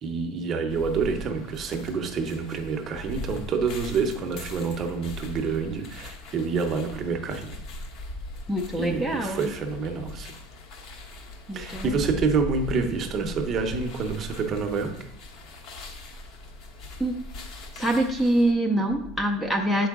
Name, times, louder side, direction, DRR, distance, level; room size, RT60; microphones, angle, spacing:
voice 1, 0.0-7.5 8.8-10.3 11.5-15.0, right 5 dB, 25° right, 5 dB, 0.7 m, -28 dB
sound 1, 0.7-18.5, left 2 dB, 45° left, 1.0 m, -40 dB
voice 2, 8.5-9.5 11.5-12.0 17.0-17.1 17.7-19.9, right 1 dB, ahead, 3 dB, 0.5 m, -25 dB
7.1 x 4.6 x 3.6 m, 0.76 s
supercardioid pair, 155°, 0 cm